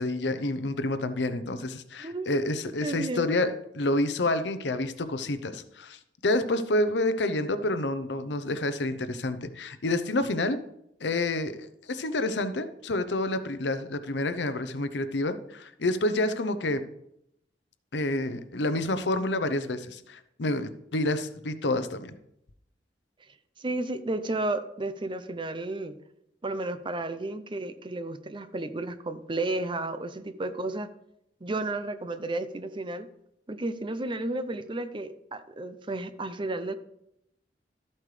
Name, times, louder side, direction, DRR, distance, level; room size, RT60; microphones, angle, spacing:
voice 1, 0.0-10.6 11.0-16.8 17.9-22.2, left 2 dB, 75° left, 11 dB, 0.8 m, -28 dB
voice 2, 2.0-2.4 2.8-3.4 23.6-26.0 26.4-30.9 31.4-33.1 33.5-36.7, right 2 dB, 30° right, 11 dB, 0.6 m, -32 dB
13.0 x 8.5 x 3.3 m, 0.78 s
head